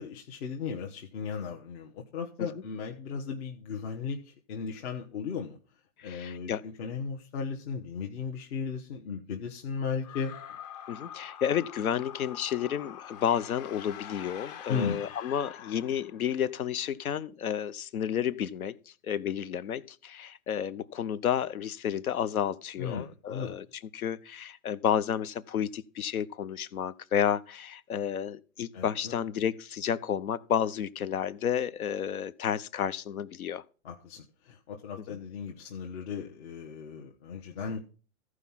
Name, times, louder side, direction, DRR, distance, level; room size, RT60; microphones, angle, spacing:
voice 1, 0.0-5.6 6.0-10.4 14.7-15.0 22.8-23.6 28.7-29.2 33.8-37.8, left 6 dB, 50° left, 1.3 m, -36 dB
voice 2, 6.0-6.6 10.9-18.8 19.1-23.6 23.9-33.6 35.1-35.2, left 9 dB, 90° left, 0.9 m, -31 dB
sound 1, 10.0-16.4, left 10 dB, 30° left, 0.8 m, -45 dB
14.5 x 4.8 x 5.6 m
hypercardioid pair, 140°, 42 cm